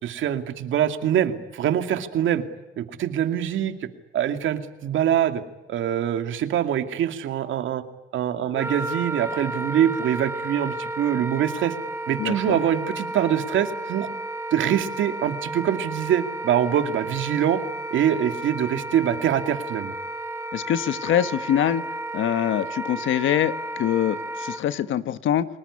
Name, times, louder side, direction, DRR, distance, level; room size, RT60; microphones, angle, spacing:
voice 1, 0.0-2.4 2.8-3.7 4.1-5.4 5.7-7.8 8.1-11.7 12.1-14.1 14.5-17.6 17.9-19.9, right 10 dB, 75° right, 8 dB, 2.4 m, -24 dB
Wind instrument woodwind instrument, 8.5-24.6, right 2 dB, 10° right, 6.3 m, -33 dB
voice 2, 12.2-12.6 20.5-21.8 22.1-25.5, left 10 dB, 75° left, 12 dB, 1.4 m, -24 dB
30.0 x 20.5 x 9.9 m, 1.1 s
cardioid pair, 90°, 20 cm